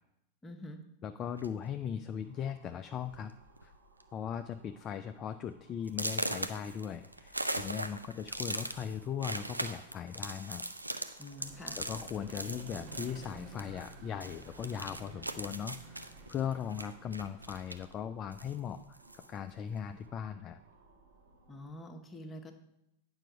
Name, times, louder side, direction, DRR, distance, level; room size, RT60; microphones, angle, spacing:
voice 1, 0.4-0.8 11.2-11.8 21.5-22.6, left 1 dB, 15° left, 3 dB, 1.1 m, -46 dB
voice 2, 1.0-3.3 3.6-3.7 4.1-10.6 11.8-18.8 19.1-20.6, left 8 dB, 30° left, 8 dB, 0.4 m, -39 dB
sound 1, 1.4-1.7 2.5-2.6 3.0-3.3 3.6-4.0 4.4-4.5 5.0-5.1 5.9-13.9 14.2-17.9 18.3-19.3, right 1 dB, 85° right, 0.5 m, -40 dB
sound 2, 1.9-21.8, right 3 dB, 65° right, 2.4 m, -63 dB
Vehicle, 11.3-17.7, right 3 dB, 50° right, 1.2 m, -51 dB
9.0 x 5.6 x 5.0 m, 0.81 s
figure-of-eight pair, 90°, 0 cm